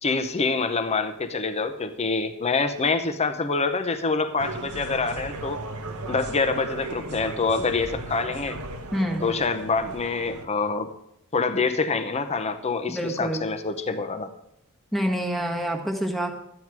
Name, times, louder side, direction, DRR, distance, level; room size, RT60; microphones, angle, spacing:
voice 1, 0.0-5.6 6.1-8.6 9.2-10.9 11.3-14.3, left 4 dB, 30° left, 9 dB, 0.8 m, -26 dB
sound 1, 4.4-10.5, right 2 dB, 85° right, 1.1 m, -36 dB
voice 2, 8.9-9.3 12.9-13.5 14.9-16.3, equal, ahead, 2 dB, 1.2 m, -27 dB
12.5 x 9.2 x 4.7 m, 0.81 s
head